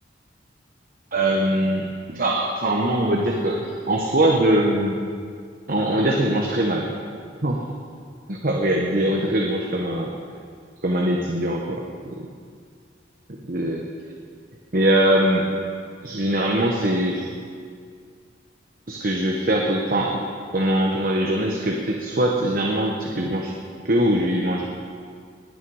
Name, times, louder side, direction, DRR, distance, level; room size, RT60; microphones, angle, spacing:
voice 1, 1.1-5.0 5.7-6.9 7.4-7.6 8.3-10.1 10.8-12.3 13.3-13.9 14.7-15.5 16.0-17.3 18.9-20.2 20.5-23.5 23.8-24.6, right 1 dB, 50° right, 0 dB, 1.2 m, -22 dB
20.5 x 8.8 x 4.9 m, 2.1 s
head